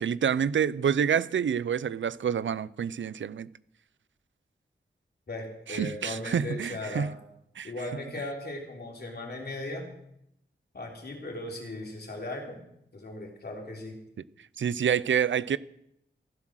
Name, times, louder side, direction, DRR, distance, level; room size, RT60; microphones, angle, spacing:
voice 1, 0.0-3.5 5.7-7.2 7.6-7.7 14.6-15.6, right 8 dB, 90° right, 0.5 m, -27 dB
voice 2, 5.3-7.1 7.6-9.9 10.7-12.6 12.9-14.0, left 2 dB, 60° left, 3.4 m, -37 dB
15.5 x 11.5 x 6.3 m
wide cardioid pair, 115°, 19 cm